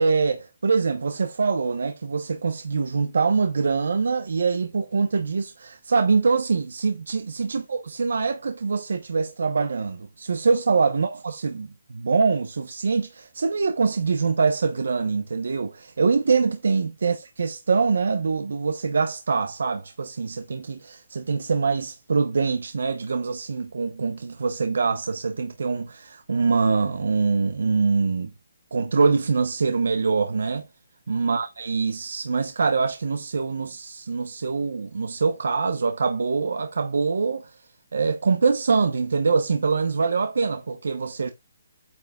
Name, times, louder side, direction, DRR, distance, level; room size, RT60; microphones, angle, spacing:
voice 1, 0.0-28.3 28.7-30.7 31.1-37.5 37.9-41.3, right 4 dB, 80° right, 1.0 m, -24 dB
9.2 x 8.0 x 2.4 m
hypercardioid pair, 165°, 0 cm